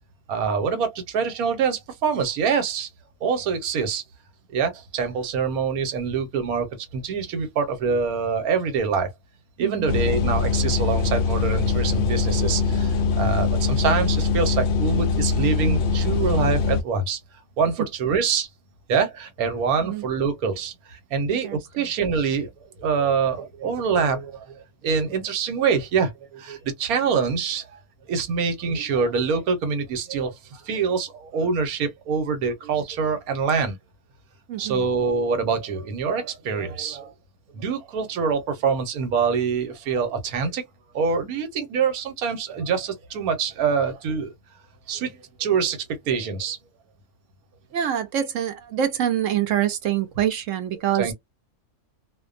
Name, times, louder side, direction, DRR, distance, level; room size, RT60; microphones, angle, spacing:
voice 1, 0.3-2.9 3.2-4.0 4.5-9.1 9.6-17.2 17.6-18.5 18.9-22.5 22.8-27.7 28.1-33.8 34.6-37.1 37.5-40.6 40.9-44.3 44.9-45.1 45.4-46.6 51.0-51.1, right 5 dB, 85° right, 1.2 m, -25 dB
voice 2, 9.6-10.0 17.8-17.9 19.8-20.1 21.4-21.9 34.5-34.9 47.7-51.1, right 10 dB, 70° right, 0.9 m, -26 dB
sound 1, 9.9-16.8, left 4 dB, 85° left, 0.4 m, -22 dB
2.5 x 2.2 x 2.4 m
omnidirectional pair, 1.5 m